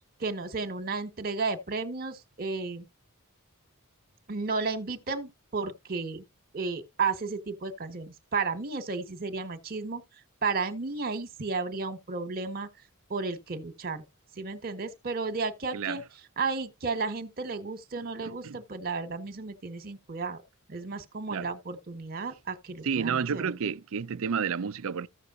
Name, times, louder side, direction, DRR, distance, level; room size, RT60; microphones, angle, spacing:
voice 1, 0.2-2.9 4.3-6.2 6.5-10.0 10.4-12.7 13.1-14.0 14.3-16.0 16.4-20.4 20.7-23.5, right 4 dB, 45° right, 1.6 m, -33 dB
voice 2, 18.2-18.6 21.3-21.5 22.8-25.1, right 6 dB, 65° right, 0.5 m, -30 dB
14.5 x 6.8 x 2.7 m
head